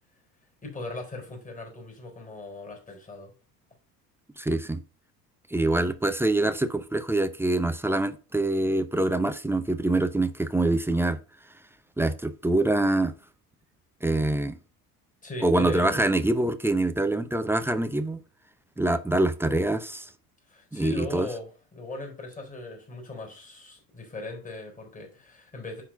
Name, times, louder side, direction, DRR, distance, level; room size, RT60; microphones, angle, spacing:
voice 1, 0.6-3.3 15.2-16.1 20.5-25.8, left 2 dB, 15° left, 4.2 m, -39 dB
voice 2, 4.4-4.8 5.5-11.2 12.0-13.1 14.0-14.6 15.4-18.2 18.8-20.1 20.7-21.3, right 2 dB, 5° right, 0.6 m, -25 dB
10.0 x 3.9 x 5.6 m
figure-of-eight pair, 65°, 49 cm